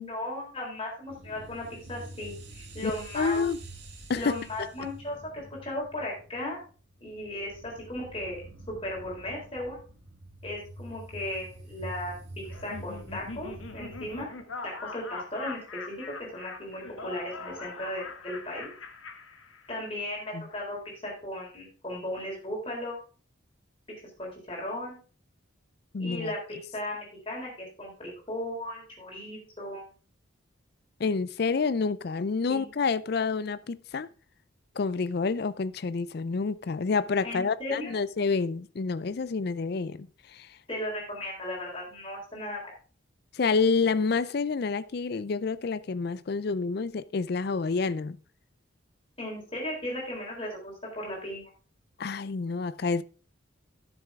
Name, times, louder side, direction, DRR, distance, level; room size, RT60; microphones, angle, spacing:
voice 1, 0.0-3.4 4.1-6.6 7.0-8.4 8.7-9.8 10.4-14.3 14.6-18.7 19.7-23.0 24.2-25.0 26.0-29.8 32.5-32.7 37.2-37.9 40.7-42.7 49.2-51.5, left 1 dB, 25° left, 4.1 m, -36 dB
sound 1, 1.1-14.2, right 1 dB, 55° right, 1.9 m, -46 dB
voice 2, 2.8-3.6 4.1-4.7 20.3-20.5 25.9-26.3 31.0-34.1 34.8-40.5 43.3-48.2 52.0-53.0, left 4 dB, 50° left, 0.4 m, -28 dB
Laughter, 12.5-20.0, left 4 dB, 80° left, 1.4 m, -42 dB
12.0 x 7.0 x 3.6 m
head